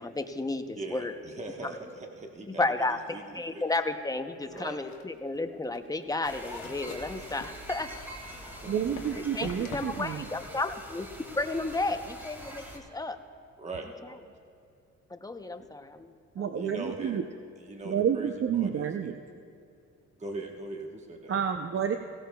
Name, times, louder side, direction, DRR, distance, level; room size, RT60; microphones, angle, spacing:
voice 1, 0.0-1.1 2.5-7.9 8.3-8.4 9.1-11.1 11.3-13.2 15.1-16.6, left 2 dB, 10° left, 8 dB, 0.7 m, -33 dB
voice 2, 0.8-3.6 4.5-4.8 8.5-8.7 9.4-9.8 13.6-13.9 15.6-15.7 16.5-17.2 17.6-19.1 20.2-21.4, right 2 dB, 25° right, 2 dB, 1.2 m, -41 dB
sound 1, 4.5-11.5, left 6 dB, 70° left, 1.3 m, -48 dB
sound 2, 6.2-12.8, equal, 5° right, 2.2 m, -44 dB
voice 3, 8.7-10.3 16.4-17.2 17.9-19.1 21.3-22.0, right 8 dB, 45° right, 6 dB, 0.6 m, -29 dB
17.5 x 17.5 x 2.3 m, 2.5 s
cardioid pair, 90°, 30 cm